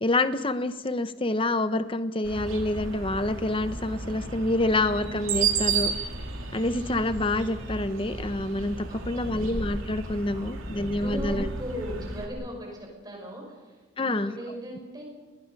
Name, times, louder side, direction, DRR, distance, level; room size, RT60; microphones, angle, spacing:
voice 1, 0.0-5.9 6.5-11.5 14.0-14.3, left 2 dB, 25° left, 12 dB, 0.8 m, -27 dB
sound 1, 2.2-12.3, right 5 dB, 85° right, 2.7 m, -33 dB
voice 2, 8.9-9.5 10.3-15.0, equal, 20° right, 0 dB, 6.0 m, -39 dB
29.5 x 20.5 x 5.3 m, 1.3 s
head